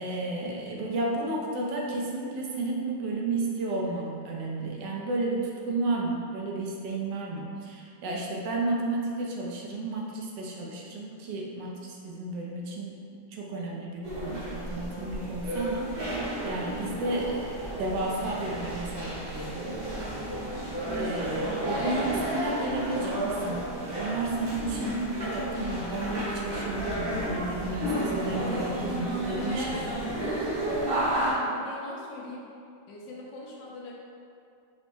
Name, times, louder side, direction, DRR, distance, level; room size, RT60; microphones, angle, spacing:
voice 1, 0.0-13.0 13.3-19.8 20.9-23.7 24.0-30.2, right 2 dB, 75° right, -2 dB, 1.2 m, -32 dB
sound 1, 14.0-31.3, right 1 dB, 40° right, 0.9 m, -32 dB
voice 2, 31.3-32.5 32.9-33.9, left 2 dB, 85° left, -3 dB, 1.4 m, -42 dB
4.5 x 2.1 x 4.1 m, 2.4 s
omnidirectional pair, 2.0 m